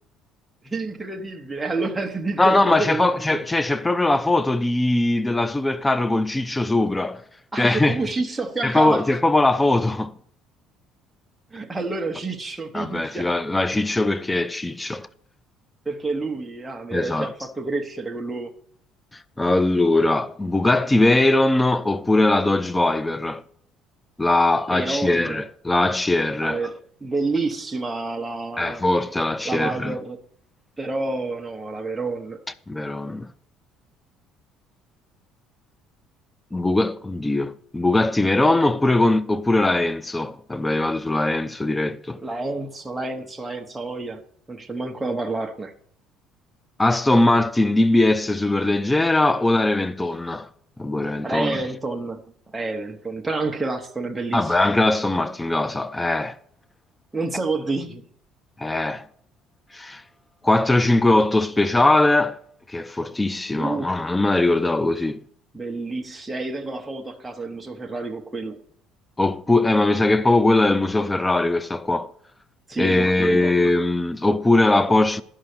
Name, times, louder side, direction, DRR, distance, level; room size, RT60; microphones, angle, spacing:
voice 1, 0.6-3.4 7.5-9.1 11.5-13.3 15.8-18.5 24.7-25.4 26.4-28.8 29.4-30.2 30.8-32.4 42.2-44.2 44.5-45.7 51.2-52.2 52.5-54.5 57.1-58.0 63.6-63.9 65.5-68.6 72.7-73.5, right 3 dB, 10° right, 0.9 m, -29 dB
voice 2, 2.4-7.2 7.6-8.0 8.6-10.2 12.7-15.1 16.9-17.3 19.4-23.4 24.2-26.7 28.6-30.0 32.7-33.3 36.5-42.2 46.8-50.5 50.8-51.6 54.3-56.4 58.6-59.1 59.7-60.0 60.4-62.4 62.7-65.2 69.2-72.1 72.8-75.2, left 2 dB, 10° left, 0.3 m, -20 dB
11.5 x 5.6 x 6.6 m
cardioid pair, 150°, 0 cm